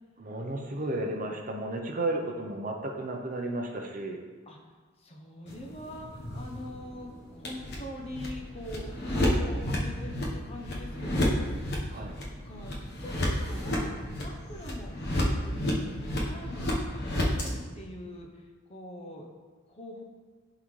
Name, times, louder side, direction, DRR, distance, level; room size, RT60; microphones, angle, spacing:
voice 1, 0.2-4.2 11.9-12.1, right 2 dB, 40° right, 2 dB, 0.6 m, -33 dB
voice 2, 0.7-1.2 4.5-4.6 5.0-12.1 12.4-12.7 13.0-13.9 14.2-19.3 19.7-20.0, left 1 dB, 30° left, 0 dB, 0.7 m, -44 dB
sound 1, 5.5-17.5, left 1 dB, 50° left, 1.1 m, -31 dB
11.0 x 3.8 x 3.2 m, 1.4 s
head